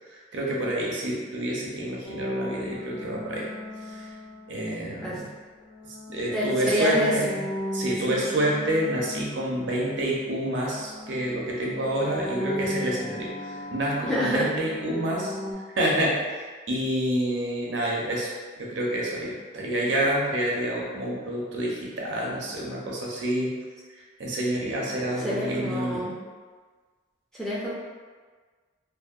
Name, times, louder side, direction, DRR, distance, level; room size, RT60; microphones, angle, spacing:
voice 1, 0.1-3.5 3.9-4.1 4.5-5.3 6.1-7.4 7.7-15.3 15.8-18.3 18.6-23.5 24.2-26.1, right 1 dB, 65° right, -3 dB, 0.5 m, -28 dB
sound 1, 2.0-4.9 5.6-10.4 10.7-15.5, left 1 dB, 75° left, 0.4 m, -37 dB
voice 2, 6.3-7.1 8.1-8.2 14.1-14.5 25.2-26.1 27.3-27.7, equal, ahead, -9 dB, 0.4 m, -27 dB
2.7 x 2.0 x 2.3 m, 1.4 s
head